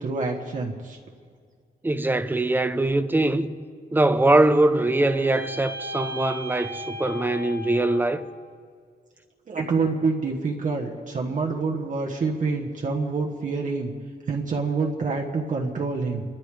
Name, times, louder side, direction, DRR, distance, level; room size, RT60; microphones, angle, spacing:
voice 1, 0.0-1.0 9.5-13.9 14.3-16.2, right 4 dB, 50° right, 1.3 m, -27 dB
voice 2, 1.8-3.6 3.9-8.3, right 2 dB, 10° right, 0.7 m, -22 dB
sound 1, 4.1-8.4, equal, 75° right, 2.0 m, -37 dB
29.5 x 13.0 x 3.4 m
wide cardioid pair, 145°, 16 cm